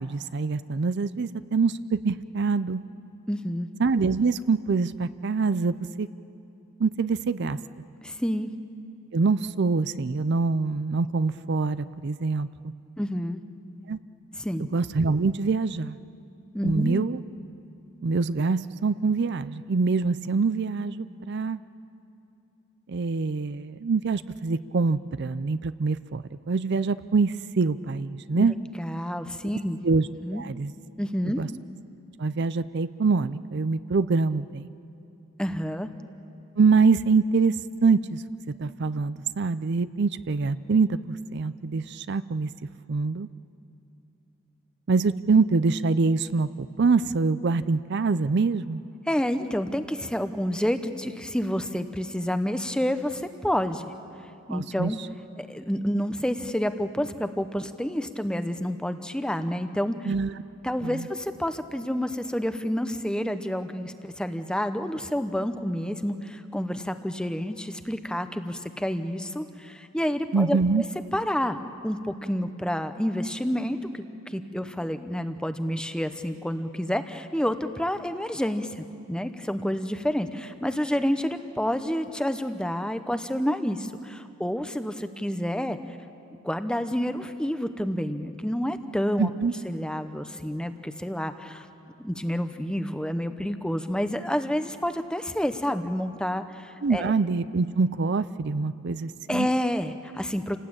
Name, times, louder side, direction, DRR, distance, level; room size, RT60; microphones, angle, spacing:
voice 1, 0.0-2.8 3.8-6.1 6.8-7.6 9.1-12.7 13.9-14.0 14.7-16.0 16.6-17.2 18.0-21.6 22.9-28.5 29.8-30.1 30.3-30.7 31.4-31.5 32.2-34.7 36.6-38.2 38.6-42.5 42.9-43.3 44.9-48.8 54.5-54.9 60.0-60.3 60.8-61.1 70.3-70.8 89.2-89.5 96.8-99.5, right 4 dB, 55° right, 14 dB, 0.5 m, -25 dB
voice 2, 3.3-3.7 8.0-8.5 13.0-13.4 14.4-14.6 16.5-17.0 28.3-29.8 30.2-30.4 31.0-31.4 35.4-35.9 49.1-53.9 54.5-55.0 55.4-60.1 60.6-70.6 71.1-71.6 71.8-85.8 86.4-89.3 89.6-91.7 92.0-97.1 99.3-100.6, equal, 5° left, 9 dB, 0.8 m, -29 dB
29.0 x 18.5 x 8.8 m, 2.7 s
head